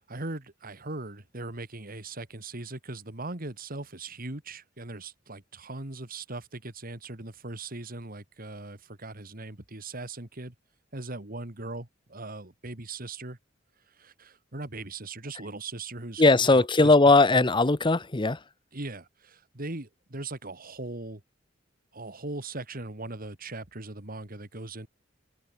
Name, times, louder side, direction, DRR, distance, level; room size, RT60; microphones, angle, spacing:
voice 1, 0.1-10.5 10.9-13.4 14.0-16.9 17.3-17.4 18.7-21.2 21.9-24.9, right 2 dB, 50° right, 2.7 m, -39 dB
voice 2, 16.2-18.4, left 3 dB, 25° left, 0.9 m, -19 dB
open air
head